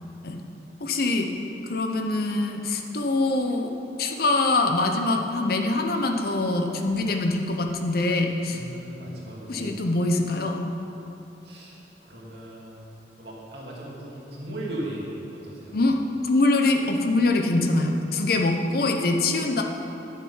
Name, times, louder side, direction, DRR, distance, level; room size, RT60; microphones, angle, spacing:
voice 1, 0.8-1.3 1.6-3.7 4.0-8.6 9.5-10.6 15.7-15.9 16.2-19.6, left 2 dB, 60° left, 3 dB, 0.8 m, -24 dB
voice 2, 8.5-9.7 11.4-12.8 13.2-15.8, right 1 dB, 70° right, -5 dB, 2.3 m, -37 dB
10.5 x 6.8 x 5.6 m, 2.9 s
head